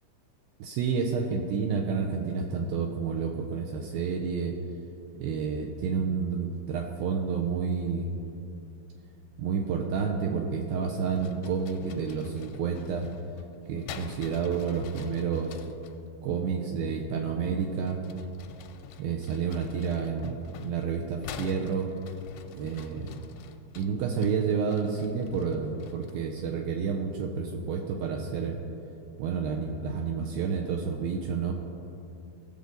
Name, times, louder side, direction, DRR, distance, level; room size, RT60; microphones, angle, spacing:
voice 1, 0.6-4.6 5.2-8.1 9.4-13.1 13.7-15.6 16.2-18.0 19.0-21.9 22.5-23.1 23.8-28.6 29.2-31.5, right 6 dB, 80° right, 2 dB, 2.2 m, -30 dB
sound 1, 11.1-16.0 17.7-26.3, left 7 dB, 85° left, 2.6 m, -47 dB
17.0 x 6.8 x 3.9 m, 2.7 s
omnidirectional pair, 4.7 m